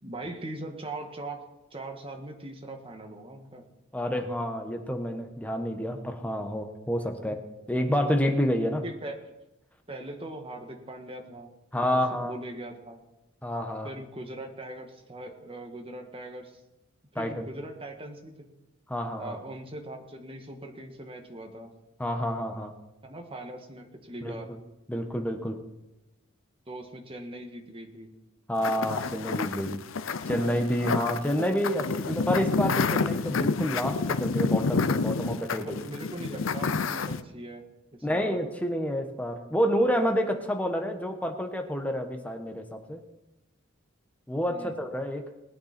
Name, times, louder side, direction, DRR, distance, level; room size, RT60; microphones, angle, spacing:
voice 1, 0.0-3.6 7.2-7.3 8.7-9.3 9.9-11.5 11.8-11.9 12.2-13.0 13.8-16.6 17.1-18.5 19.2-21.7 23.0-24.5 26.7-28.1 35.5-37.7 37.9-38.3 44.5-44.8, right 1 dB, 30° right, 3 dB, 1.7 m, -40 dB
voice 2, 3.9-7.4 7.7-8.8 11.7-12.4 13.4-13.9 17.1-17.4 18.9-19.4 22.0-22.7 24.2-24.6 24.9-25.6 28.5-29.8 30.3-35.8 38.0-43.0 44.3-45.3, equal, 5° left, 5 dB, 1.2 m, -29 dB
sound 1, 28.6-37.2, left 4 dB, 75° left, 0.6 m, -29 dB
20.5 x 9.4 x 4.4 m, 0.97 s
head